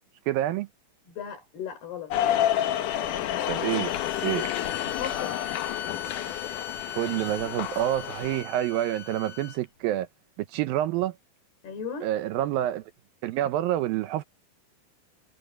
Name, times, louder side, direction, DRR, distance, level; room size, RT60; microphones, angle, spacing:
voice 1, 0.3-0.7 3.5-3.9 4.2-4.5 6.9-10.1 10.4-11.2 12.0-12.8 13.2-14.2, right 13 dB, 75° right, 2.4 m, -27 dB
voice 2, 1.1-2.1 4.8-5.4 11.6-12.1, left 7 dB, 85° left, 6.9 m, -36 dB
sound 1, 2.1-8.4, left 11 dB, 65° left, 2.3 m, -29 dB
sound 2, 3.9-9.6, left 8 dB, 45° left, 2.1 m, -39 dB
omnidirectional pair, 4.5 m